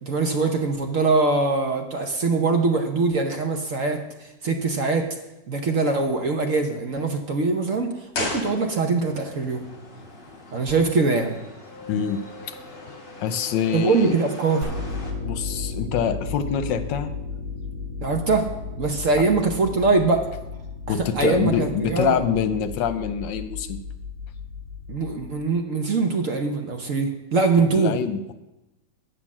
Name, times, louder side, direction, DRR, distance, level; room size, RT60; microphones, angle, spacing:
voice 1, 0.0-5.1 5.5-9.6 10.5-11.4 13.7-14.7 18.0-18.5 18.8-20.3 20.9-22.2 24.9-27.9, right 3 dB, 55° right, 4 dB, 1.1 m, -23 dB
sound 1, 8.1-9.2 9.5-9.6, left 2 dB, 55° left, 2.2 m, -31 dB
sound 2, 9.1-15.1, left 2 dB, 30° left, 1.4 m, -42 dB
voice 2, 11.9-12.6 13.2-14.2 15.2-17.1 20.9-23.8 27.6-28.3, left 7 dB, 85° left, 10 dB, 1.4 m, -25 dB
sound 3, 14.6-25.6, left 4 dB, 90° right, 1.7 m, -34 dB
9.6 x 5.3 x 7.3 m, 0.96 s
omnidirectional pair, 2.0 m